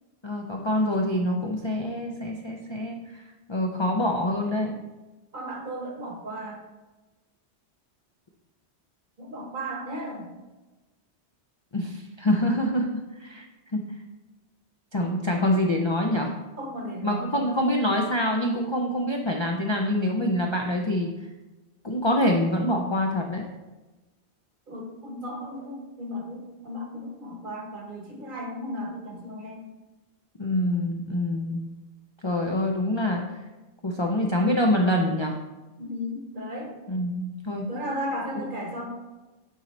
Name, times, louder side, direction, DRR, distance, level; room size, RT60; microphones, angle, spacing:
voice 1, 0.2-3.2 3.5-4.8 11.7-13.4 13.7-13.8 14.9-16.3 17.0-21.1 21.8-23.4 30.4-31.6 32.2-33.2 33.8-35.4 36.9-37.7, left 1 dB, 40° left, 0 dB, 0.4 m, -25 dB
voice 2, 5.3-6.6 9.2-10.3 16.6-17.7 24.7-29.7 35.8-36.7 37.7-38.9, equal, 50° right, 1 dB, 1.2 m, -35 dB
9.0 x 3.9 x 3.2 m, 1.1 s
omnidirectional pair, 1.1 m